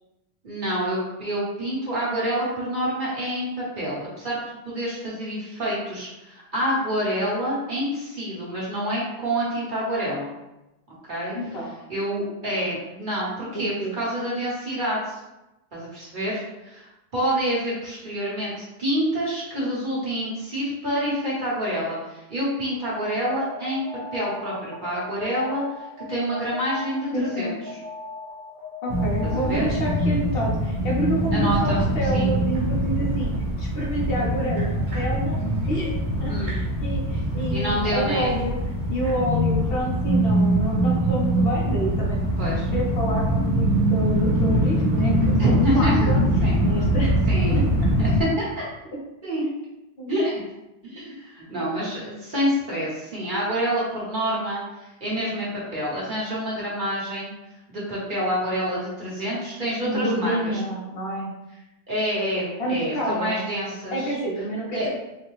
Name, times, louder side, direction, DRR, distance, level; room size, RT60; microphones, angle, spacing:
voice 1, 0.4-4.4 4.6-10.3 11.1-11.3 11.9-15.2 15.7-16.8 17.1-23.8 24.1-27.5 29.2-29.7 31.3-31.8 32.1-32.3 36.3-36.6 37.5-38.3 42.4-42.7 45.4-46.1 46.4-46.6 47.3-47.6 48.0-48.5 49.2-49.4 50.1-50.4 50.8-57.3 57.7-60.6 61.9-64.1 64.7-64.9, equal, 50° right, -7 dB, 1.2 m, -27 dB
voice 2, 11.3-11.8 13.5-13.9 27.1-27.6 28.8-33.3 33.6-35.4 35.7-36.0 36.2-38.6 38.9-42.2 42.7-47.2 47.5-47.6 50.0-50.1 59.8-61.3 62.6-63.4 63.9-64.9, right 1 dB, 65° left, -3 dB, 1.0 m, -28 dB
Alarm, 22.9-30.0, left 4 dB, 10° right, 1.0 m, -39 dB
sound 1, 28.9-48.2, right 1 dB, 80° right, 1.2 m, -23 dB
4.0 x 2.2 x 3.1 m, 0.95 s
omnidirectional pair, 1.1 m